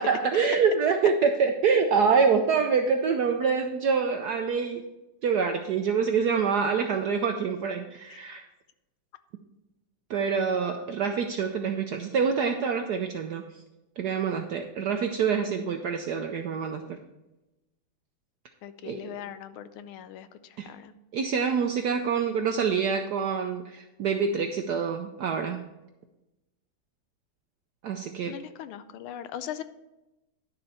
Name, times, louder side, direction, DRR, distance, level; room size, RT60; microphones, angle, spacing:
voice 1, 0.0-4.8 5.2-8.4 10.1-13.4 14.0-16.8 18.8-19.2 20.6-20.7 21.1-25.6 27.8-28.4, right 6 dB, 70° right, 5 dB, 0.9 m, -26 dB
voice 2, 18.6-20.9 28.3-29.6, left 10 dB, 85° left, 12 dB, 1.5 m, -40 dB
11.0 x 6.9 x 4.3 m, 0.98 s
omnidirectional pair, 2.3 m